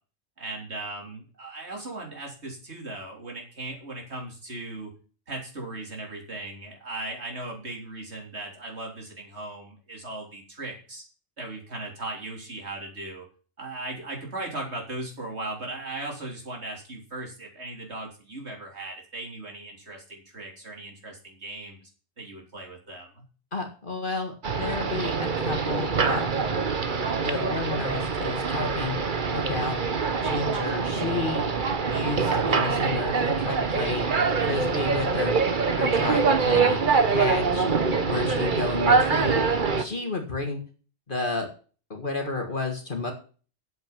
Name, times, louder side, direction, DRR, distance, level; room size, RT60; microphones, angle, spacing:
voice 1, 0.4-4.9 5.3-11.0 11.4-13.3 13.6-21.9 22.2-23.2, right 2 dB, 70° right, 0 dB, 4.1 m, -38 dB
voice 2, 23.5-26.3 27.2-29.8 30.1-31.5 31.9-34.1 34.4-36.8 37.1-37.7 38.0-39.4 39.8-40.6 41.1-41.5 41.9-43.1, left 3 dB, 45° left, 3 dB, 2.0 m, -31 dB
sound 1, 24.4-39.8, right 5 dB, 45° right, 1.2 m, -24 dB
9.0 x 7.9 x 7.4 m, 0.38 s
omnidirectional pair, 1.2 m